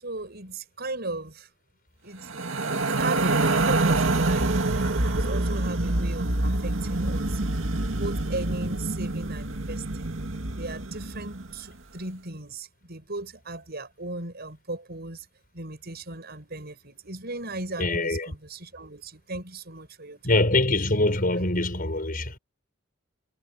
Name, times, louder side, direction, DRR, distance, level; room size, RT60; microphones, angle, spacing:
voice 1, 0.0-1.5 2.0-4.6 5.0-7.4 8.0-10.1 10.6-15.3 15.5-20.4, right 2 dB, 55° right, 7.3 m, -37 dB
sound 1, 2.2-11.6, right 2 dB, 80° right, 2.1 m, -26 dB
voice 2, 17.8-18.3 20.2-22.4, left 2 dB, 45° left, 6.2 m, -24 dB
head